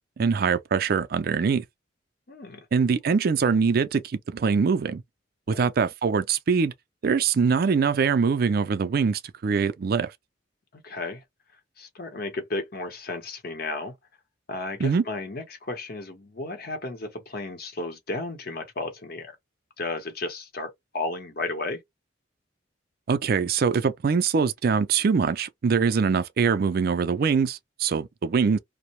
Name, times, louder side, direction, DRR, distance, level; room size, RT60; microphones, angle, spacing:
voice 1, 0.2-1.6 2.7-5.0 5.5-6.7 7.0-10.1 14.8-15.0 23.1-28.6, right 5 dB, 50° right, 0.4 m, -23 dB
voice 2, 2.3-2.7 5.5-5.7 10.7-11.2 11.8-13.9 14.5-19.3 19.8-21.8, left 2 dB, 50° left, 0.8 m, -33 dB
2.6 x 2.0 x 3.0 m
head